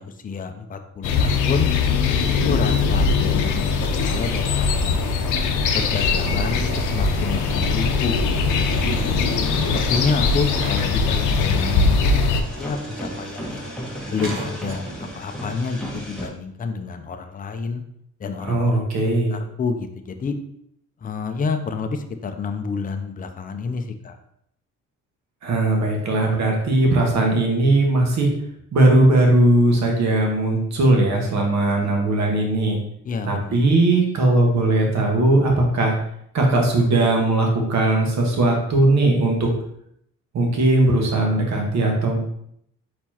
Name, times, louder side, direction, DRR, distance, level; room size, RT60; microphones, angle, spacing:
voice 1, 0.0-1.7 2.2-5.0 5.7-9.0 9.6-13.7 14.1-17.8 18.2-18.8 19.3-20.4 21.0-24.2 33.0-33.7, left 4 dB, 30° left, 6 dB, 0.5 m, -29 dB
sound 1, 1.0-12.4, left 4 dB, 85° left, 0.6 m, -21 dB
sound 2, 3.5-15.2, right 3 dB, 45° right, 1.1 m, -38 dB
sound 3, 6.0-16.3, equal, ahead, 1.3 m, -37 dB
voice 2, 18.4-19.4 25.4-28.3 28.7-32.8 33.3-35.9 36.3-39.5 40.3-42.2, right 2 dB, 65° right, 0 dB, 1.4 m, -19 dB
4.4 x 4.2 x 2.8 m, 0.73 s
cardioid pair, 90°, 30 cm